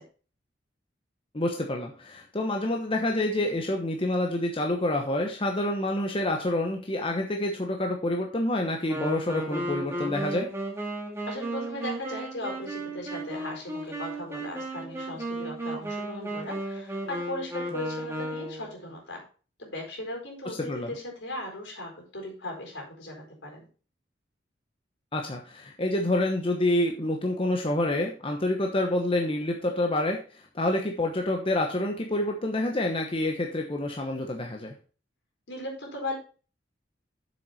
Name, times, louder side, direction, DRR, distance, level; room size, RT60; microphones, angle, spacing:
voice 1, 1.3-10.5 20.4-20.9 25.1-34.7, left 1 dB, 30° left, 2 dB, 1.1 m, -28 dB
Wind instrument woodwind instrument, 8.9-18.8, right 1 dB, 15° right, 2.3 m, -34 dB
voice 2, 11.3-19.2 19.6-23.7 35.5-36.1, left 1 dB, 70° left, 1 dB, 4.4 m, -37 dB
7.6 x 7.5 x 4.3 m, 0.38 s
head